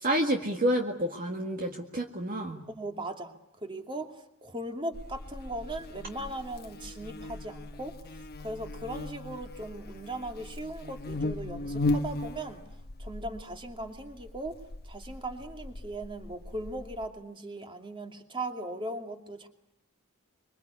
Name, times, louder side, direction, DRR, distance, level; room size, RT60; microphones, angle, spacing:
voice 1, 0.0-2.6, right 1 dB, 40° right, 2 dB, 1.9 m, -29 dB
voice 2, 2.7-3.3 3.6-4.1 4.4-7.9 8.4-12.6 13.0-14.6 14.8-19.5, right 1 dB, 25° right, 4 dB, 2.6 m, -38 dB
Buzz, 4.9-17.1, left 2 dB, 45° left, 1.0 m, -37 dB
25.5 x 24.0 x 8.3 m, 0.78 s
head